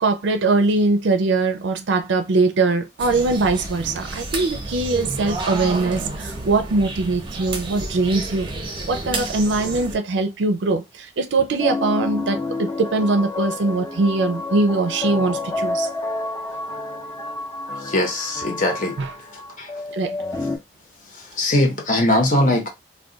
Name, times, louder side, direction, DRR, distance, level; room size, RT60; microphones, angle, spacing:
voice 1, 0.0-8.5 8.9-15.9 19.0-19.1 19.9-20.2, right 3 dB, 80° right, 0.4 m, -21 dB
sound 1, 3.0-10.0, right 2 dB, 25° right, 0.5 m, -30 dB
sound 2, 11.6-20.6, left 3 dB, 15° left, 0.6 m, -29 dB
voice 2, 17.8-19.0 19.6-19.7 21.1-22.7, left 1 dB, 45° left, 0.9 m, -20 dB
2.3 x 2.2 x 3.8 m
head